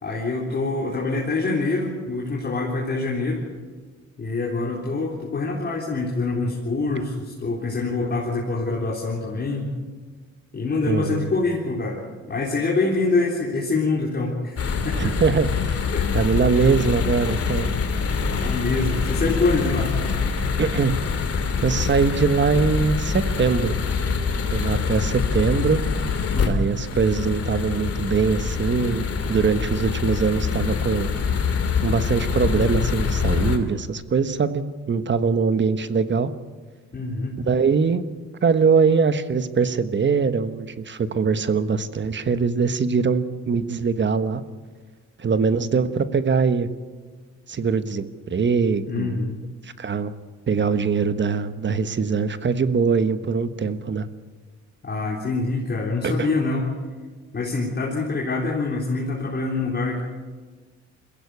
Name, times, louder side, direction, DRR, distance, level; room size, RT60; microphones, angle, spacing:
voice 1, 0.0-3.4 4.2-9.7 10.5-14.6 14.8-15.1 15.9-16.1 18.3-19.9 26.3-26.7 36.9-37.4 48.9-49.4 54.8-56.7 57.3-60.0, left 3 dB, 35° left, -3 dB, 3.9 m, -25 dB
voice 2, 10.9-11.3 15.0-15.9 16.1-17.7 20.6-21.0 21.6-23.8 24.5-25.8 26.5-31.1 31.8-36.3 37.4-38.0 38.4-44.4 45.2-46.7 47.5-49.2 49.6-50.1 50.5-54.1 56.0-56.3, right 5 dB, 40° right, 11 dB, 1.3 m, -22 dB
sound 1, 14.6-33.6, left 5 dB, 50° left, 2.7 m, -25 dB
22.5 x 16.0 x 8.3 m, 1.4 s
cardioid pair, 90°, 30 cm